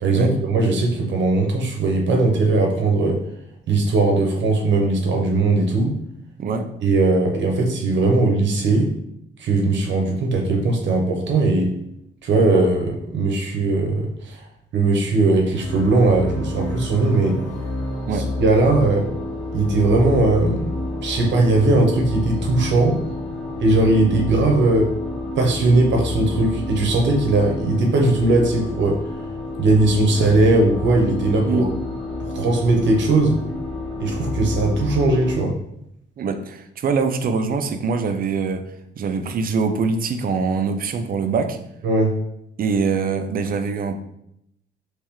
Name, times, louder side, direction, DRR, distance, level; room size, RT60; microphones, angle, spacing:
voice 1, 0.0-3.2 3.7-5.9 6.8-8.9 9.4-11.7 12.2-14.4 14.7-17.4 18.1-19.1 19.5-20.7 21.0-23.0 23.6-24.9 25.4-29.0 29.6-31.7 32.2-33.4 34.0-35.6 41.8-42.1, right 2 dB, 65° right, 1 dB, 0.8 m, -19 dB
voice 2, 6.4-6.7 18.1-18.3 31.5-31.7 36.2-38.7 39.0-41.6 42.6-43.9, right 5 dB, 45° right, 8 dB, 0.5 m, -23 dB
sound 1, 15.5-35.3, left 2 dB, 80° left, 1.1 m, -29 dB
3.5 x 3.2 x 3.0 m, 0.77 s
cardioid pair, 90°, 20 cm